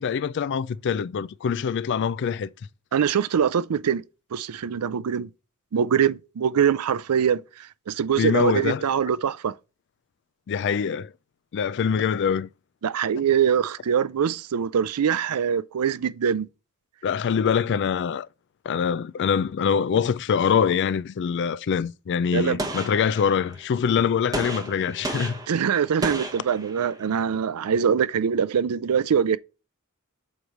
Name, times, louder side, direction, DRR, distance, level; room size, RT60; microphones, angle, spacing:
voice 1, 0.0-2.5 8.2-8.9 10.5-11.1 11.5-12.5 17.0-18.3 18.7-25.4, left 7 dB, 55° left, 0.3 m, -24 dB
voice 2, 2.9-4.0 4.3-5.3 5.7-9.5 12.8-16.5 22.3-22.6 25.5-29.4, right 7 dB, 85° right, 0.4 m, -23 dB
Gunshot gunfire, 22.6-23.6 24.3-27.1, right 1 dB, 15° right, 1.0 m, -33 dB
8.1 x 3.1 x 5.2 m
head